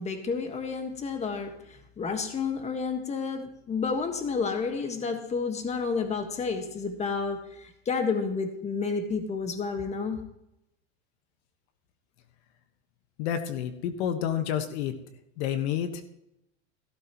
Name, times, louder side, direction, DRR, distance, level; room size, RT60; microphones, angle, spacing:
voice 1, 0.0-10.2, left 5 dB, 20° left, 6 dB, 1.6 m, -30 dB
voice 2, 13.2-14.9 15.4-16.0, left 9 dB, 65° left, 8 dB, 1.5 m, -29 dB
16.0 x 12.5 x 3.1 m, 0.82 s
supercardioid pair, 145°, 35 cm